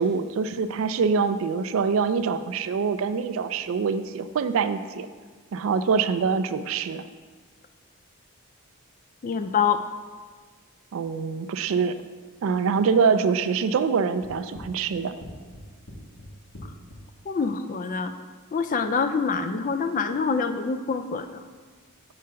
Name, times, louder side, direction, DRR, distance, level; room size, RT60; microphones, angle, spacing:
voice 1, 0.0-5.1 5.5-7.0 10.9-11.9 12.4-15.2, right 5 dB, 65° right, 11 dB, 0.3 m, -24 dB
voice 2, 9.2-9.8 17.3-18.1 18.5-21.4, left 5 dB, 35° left, 9 dB, 0.3 m, -26 dB
sound 1, 14.2-17.0, left 1 dB, 80° left, 1.5 m, -42 dB
6.7 x 3.7 x 5.6 m, 1.5 s
head